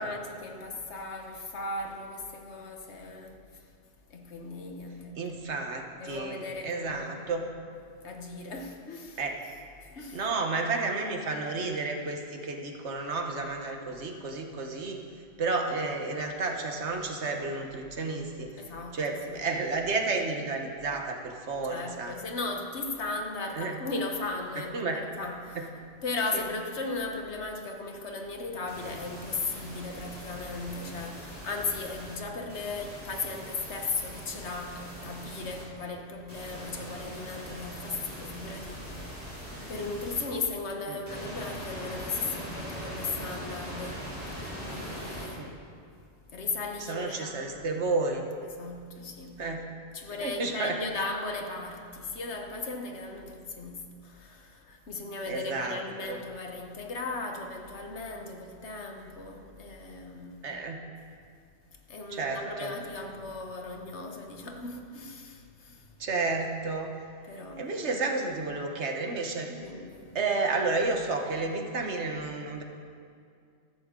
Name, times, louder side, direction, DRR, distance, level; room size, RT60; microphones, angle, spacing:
voice 1, 0.0-3.7 4.1-5.6 6.0-7.5 8.0-9.2 9.8-10.2 18.6-19.0 19.3-19.4 21.7-25.7 26.0-45.6 46.3-47.8 48.4-49.5 49.9-60.5 61.7-65.9 67.2-67.7 69.5-70.1, left 3 dB, 75° left, 1.4 m, -37 dB
voice 2, 5.2-7.4 9.2-9.4 10.1-15.0 15.4-18.5 18.9-22.1 23.6-23.8 24.7-25.0 40.9-41.0 45.4-45.5 46.8-48.3 49.4-49.6 50.2-50.8 55.3-55.8 56.1-56.2 60.4-60.8 62.1-62.7 66.0-66.9 67.6-69.5 70.1-72.6, right 3 dB, 75° right, 1.5 m, -31 dB
sound 1, 28.7-32.2 32.5-35.6 36.3-40.2 41.1-45.3, equal, 15° right, 3.7 m, -41 dB
14.0 x 13.5 x 3.8 m
omnidirectional pair, 1.2 m